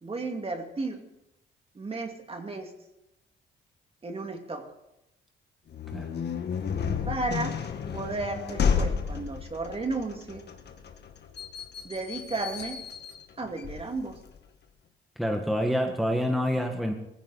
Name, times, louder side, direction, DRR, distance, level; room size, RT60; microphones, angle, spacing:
voice 1, 0.0-1.1 1.7-2.7 4.0-4.7 7.1-7.6 7.9-10.4 11.8-12.8 13.4-14.2, right 3 dB, 30° right, 4 dB, 2.5 m, -33 dB
sound 1, 5.7-14.4, left 6 dB, 55° left, 1.8 m, -32 dB
voice 2, 15.2-16.9, equal, ahead, 3 dB, 1.9 m, -27 dB
18.0 x 15.5 x 4.2 m, 0.87 s
cardioid pair, 90°, 20 cm